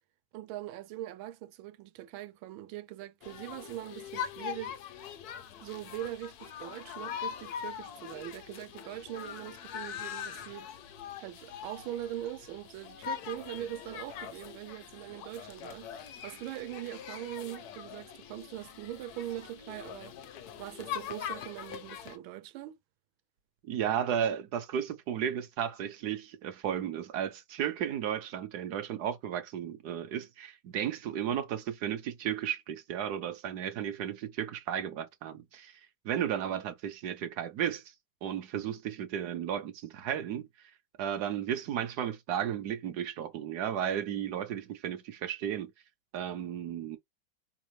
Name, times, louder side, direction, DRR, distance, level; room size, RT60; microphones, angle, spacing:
voice 1, 0.3-4.8 5.6-10.7 11.2-20.2 20.6-22.7, right 13 dB, 85° right, 1.4 m, -42 dB
sound 1, 3.2-22.2, left 9 dB, 65° left, 1.0 m, -42 dB
voice 2, 23.6-37.9 38.2-45.7 46.1-47.0, right 9 dB, 70° right, 1.0 m, -34 dB
4.8 x 3.4 x 3.2 m
omnidirectional pair, 2.2 m